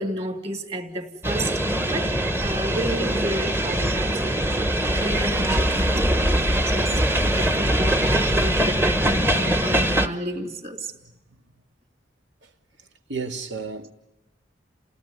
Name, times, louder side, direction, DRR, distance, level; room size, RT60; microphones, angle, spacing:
voice 1, 0.0-1.6 1.9-11.0, right 1 dB, 35° right, 3.2 m, -32 dB
sound 1, 1.2-10.1, right 1 dB, 10° right, 1.2 m, -22 dB
voice 2, 13.1-13.9, right 4 dB, 80° right, 2.3 m, -32 dB
29.5 x 18.0 x 9.7 m
head